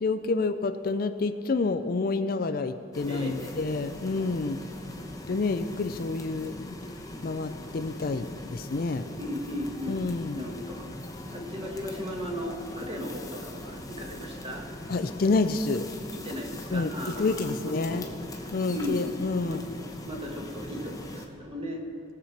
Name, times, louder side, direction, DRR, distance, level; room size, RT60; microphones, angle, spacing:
voice 1, 0.0-4.6 5.3-6.8 7.2-9.1 9.9-10.4 14.9-15.9 16.7-18.0 18.5-19.6, left 3 dB, 50° left, 10 dB, 0.4 m, -28 dB
sound 1, 2.9-21.3, left 1 dB, 20° left, 0.9 m, -41 dB
voice 2, 3.1-3.6 9.2-10.8 11.3-14.7 16.2-18.1 18.4-19.6 20.0-21.8, equal, 30° right, 0 dB, 1.5 m, -36 dB
19.5 x 7.5 x 4.3 m, 2.5 s
head